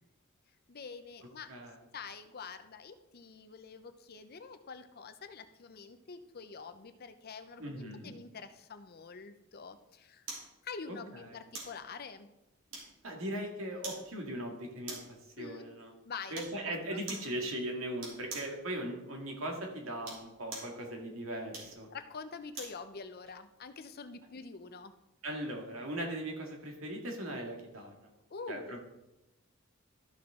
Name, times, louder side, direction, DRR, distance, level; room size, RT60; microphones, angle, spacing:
voice 1, 0.5-1.5 1.9-10.3 10.6-12.3 15.4-15.7 16.0-17.0 21.9-24.9 28.3-28.8, left 5 dB, 50° left, 9 dB, 0.6 m, -46 dB
voice 2, 7.6-8.1 10.9-11.0 13.0-15.9 16.3-21.9 25.2-28.1 28.5-28.8, right 1 dB, 85° right, 1 dB, 2.0 m, -39 dB
sound 1, 10.3-10.5 11.5-11.8 12.7-13.2 13.8-14.1 14.9-15.2 16.3-16.6 17.1-17.3 18.0-18.6 19.9-20.8 21.5-22.8 23.3-23.4, right 3 dB, 70° right, 3.1 m, -44 dB
13.0 x 6.0 x 3.7 m, 0.93 s
head